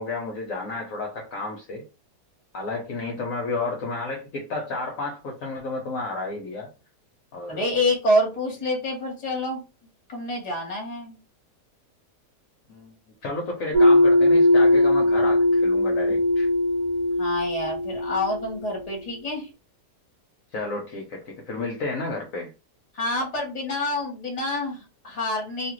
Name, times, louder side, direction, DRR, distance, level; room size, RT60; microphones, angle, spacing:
voice 1, 0.0-1.8 2.5-6.7 7.3-7.7 12.7-12.9 13.2-16.5 20.5-22.5, left 3 dB, 65° left, 0 dB, 1.0 m, -32 dB
voice 2, 7.5-9.6 10.1-11.2 17.2-19.5 22.9-25.7, left 1 dB, 25° left, 0 dB, 1.1 m, -27 dB
sound 1, 13.7-18.5, left 1 dB, 75° right, 1.3 m, -19 dB
2.7 x 2.4 x 3.0 m, 0.29 s
omnidirectional pair, 1.7 m